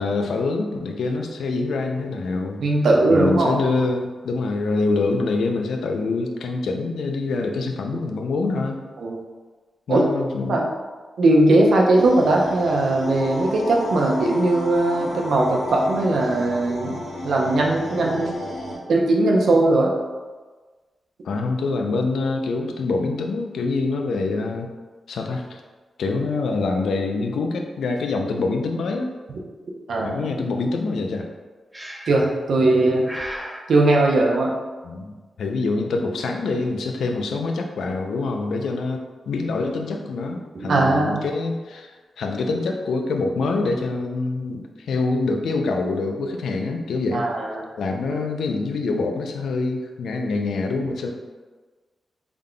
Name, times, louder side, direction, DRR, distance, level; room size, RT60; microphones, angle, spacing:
voice 1, 0.0-2.6 3.1-8.8 9.9-10.6 21.2-24.7 25.1-25.6 26.0-29.1 30.0-31.3 34.8-41.9 42.2-47.2 47.8-51.1, left 3 dB, 90° left, 3 dB, 0.4 m, -25 dB
voice 2, 2.6-3.5 9.0-9.2 9.9-10.0 10.5-10.7 11.2-18.4 18.9-19.9 29.9-30.2 32.1-33.1 33.7-34.5 40.5-41.2 47.1-47.6 48.1-48.2, right 2 dB, 70° right, -1 dB, 0.6 m, -19 dB
sound 1, 11.9-18.7, equal, 65° left, 0.9 m, -33 dB
Breathing, 31.7-32.3 33.0-33.6, equal, 5° right, 0.4 m, -34 dB
3.5 x 2.2 x 3.7 m, 1.3 s
wide cardioid pair, 110°, 0 cm